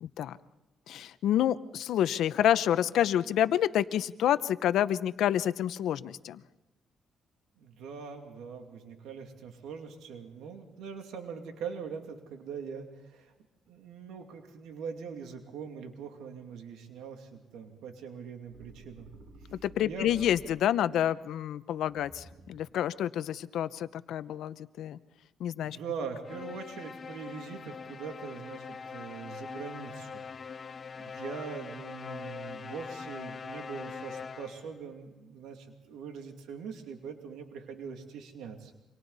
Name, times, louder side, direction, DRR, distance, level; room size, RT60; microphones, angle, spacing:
voice 1, 0.0-0.4 0.9-6.4 19.6-25.0 25.4-25.8, left 11 dB, 75° left, 14 dB, 0.8 m, -28 dB
voice 2, 7.6-13.3 13.7-19.1 19.4-20.3 20.9-21.0 25.5-30.3 30.6-38.7, right 6 dB, 85° right, 4 dB, 2.5 m, -42 dB
sound 1, 18.5-20.9 21.9-22.9, right 2 dB, 55° right, 5.1 m, -52 dB
sound 2, 26.2-34.8, left 5 dB, 40° left, 0.7 m, -42 dB
28.5 x 25.5 x 4.2 m, 1.0 s
cardioid pair, 90°, 0 cm